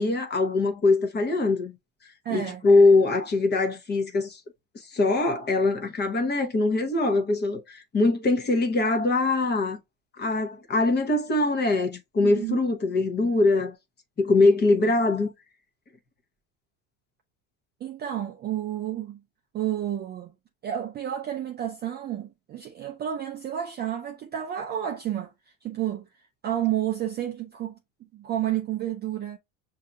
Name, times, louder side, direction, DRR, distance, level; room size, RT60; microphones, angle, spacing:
voice 1, 0.0-1.7 2.3-4.4 4.9-9.8 10.2-13.7 14.2-15.3, left 3 dB, 20° left, 0.9 m, -22 dB
voice 2, 2.2-2.7 12.2-12.6 17.8-19.2 19.5-20.3 20.6-25.3 25.6-26.1 26.4-27.8 28.1-29.4, right 11 dB, 25° right, 0.4 m, -30 dB
6.5 x 2.8 x 2.2 m
cardioid pair, 150°, 47 cm